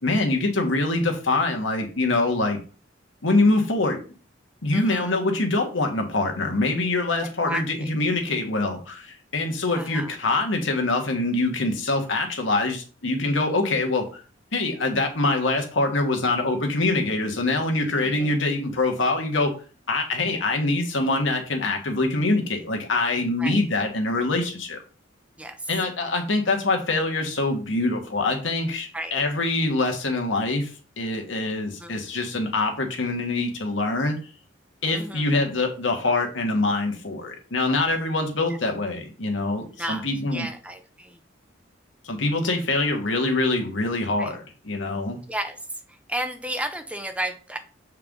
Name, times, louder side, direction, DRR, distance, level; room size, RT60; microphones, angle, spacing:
voice 1, 0.0-2.6 3.2-4.0 4.6-14.2 14.5-19.5 19.9-24.8 25.7-30.7 31.0-34.2 34.8-40.5 42.0-45.2, left 2 dB, 85° left, 3 dB, 1.5 m, -24 dB
voice 2, 4.7-5.2 7.4-7.9 9.7-10.2 18.0-18.4 23.4-23.6 25.4-25.6 28.9-29.1 31.8-32.0 34.9-35.3 39.7-40.1 40.3-41.2 44.2-44.3 45.3-45.6 46.1-47.6, right 1 dB, 5° right, 7 dB, 0.6 m, -32 dB
7.2 x 4.6 x 3.7 m, 0.37 s
head